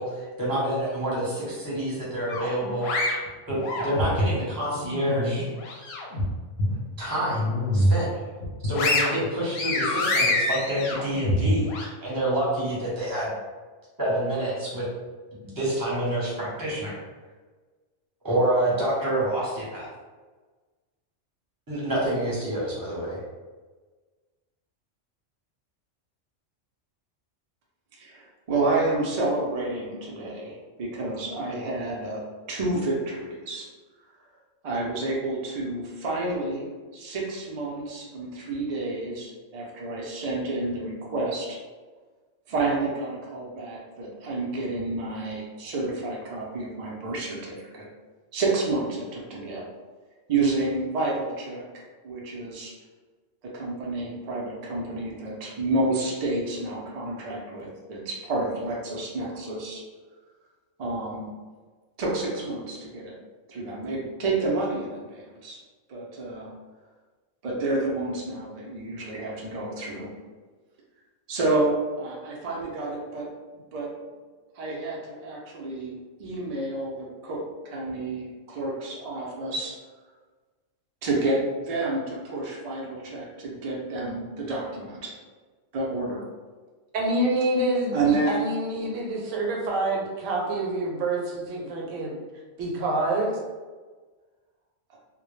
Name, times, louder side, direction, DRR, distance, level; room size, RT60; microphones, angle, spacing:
voice 1, 0.0-3.0 3.5-5.5 7.0-7.5 7.7-8.1 8.6-11.7 12.0-13.3 14.0-14.9 15.6-17.0 18.2-19.9 21.7-23.2, right 1 dB, 20° right, -7 dB, 0.7 m, -27 dB
sound 1, 2.3-4.3 4.8-6.2 6.6-6.7 7.2-8.0 8.4-11.9, left 1 dB, 65° left, 0.7 m, -26 dB
voice 2, 27.9-32.2 32.5-33.7 34.6-36.7 36.9-41.6 42.5-47.9 48.3-49.6 50.3-52.7 53.4-59.8 60.8-61.3 62.0-63.2 63.5-65.6 65.9-66.5 67.4-70.1 71.3-73.3 73.7-73.9 74.5-79.7 81.0-85.2 85.7-86.3 87.9-88.5, right 2 dB, 65° right, -4 dB, 0.3 m, -29 dB
voice 3, 86.9-92.2 92.6-93.4, right 1 dB, 80° right, -1 dB, 0.9 m, -27 dB
2.1 x 2.1 x 3.0 m, 1.4 s
omnidirectional pair, 1.3 m